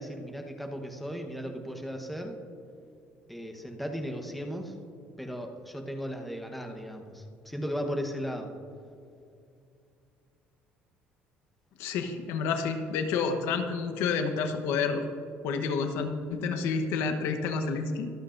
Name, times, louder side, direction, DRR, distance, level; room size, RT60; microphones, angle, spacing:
voice 1, 0.0-2.4 3.3-4.7 5.2-8.5, equal, ahead, 3 dB, 1.0 m, -36 dB
voice 2, 11.8-15.0 15.4-18.1, left 5 dB, 80° left, 7 dB, 1.0 m, -29 dB
24.0 x 8.3 x 2.6 m, 2.4 s
cardioid pair, 130°, 4 cm